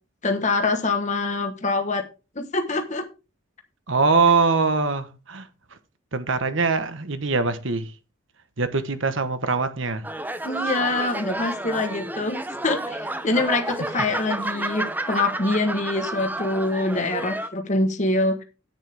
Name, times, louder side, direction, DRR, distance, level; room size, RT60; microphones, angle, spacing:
voice 1, 0.2-2.0 2.3-3.1 10.4-18.4, left 2 dB, 35° left, 1.1 m, -25 dB
voice 2, 3.9-5.5 6.1-7.9 8.6-10.0, right 4 dB, 70° right, 1.2 m, -22 dB
sound 1, 10.0-17.5, right 1 dB, 10° right, 0.6 m, -30 dB
10.0 x 9.1 x 3.5 m
head